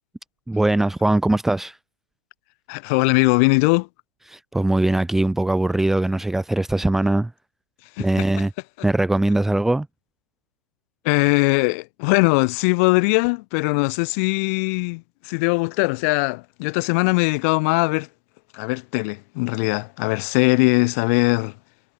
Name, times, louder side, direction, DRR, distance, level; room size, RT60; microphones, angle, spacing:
voice 1, 0.5-1.8 4.3-7.3 8.0-8.5 8.8-9.9, right 2 dB, ahead, 1.5 m, -21 dB
voice 2, 2.7-3.9 8.0-8.1 11.0-18.1 18.5-21.5, left 30 dB, 30° left, 6.1 m, -20 dB
hypercardioid pair, 150°, 15 cm